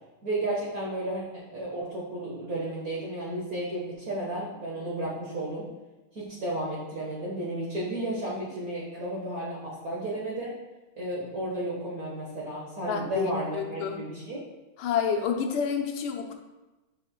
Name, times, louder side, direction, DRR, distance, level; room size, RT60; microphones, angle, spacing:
voice 1, 0.2-1.2 1.5-5.7 6.1-10.5 11.0-14.4, right 1 dB, 45° right, -6 dB, 1.6 m, -33 dB
voice 2, 12.9-14.0 14.8-16.3, left 6 dB, 80° left, 3 dB, 1.6 m, -29 dB
11.0 x 5.5 x 2.2 m, 1.1 s
omnidirectional pair, 2.4 m